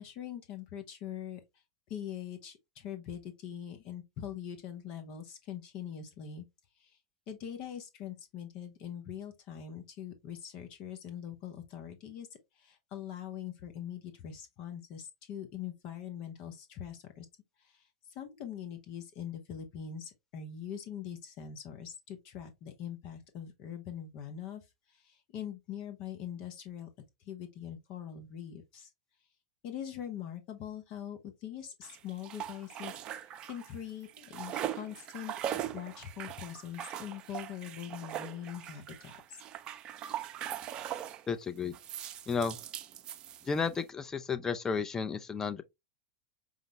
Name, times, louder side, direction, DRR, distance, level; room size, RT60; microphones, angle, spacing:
voice 1, 0.0-1.4 1.9-6.4 6.8-7.0 7.3-12.3 12.6-17.3 17.6-26.9 27.2-28.9 29.6-32.9 33.5-39.4, left 9 dB, 50° left, 0.7 m, -43 dB
sound 1, 31.8-33.8 34.0-41.2 41.7-43.8, right 11 dB, 40° right, 0.4 m, -41 dB
voice 2, 41.3-41.7 42.3-42.6 43.4-45.6, left 5 dB, 20° left, 0.5 m, -32 dB
4.9 x 2.1 x 2.9 m
hypercardioid pair, 95°, 2 cm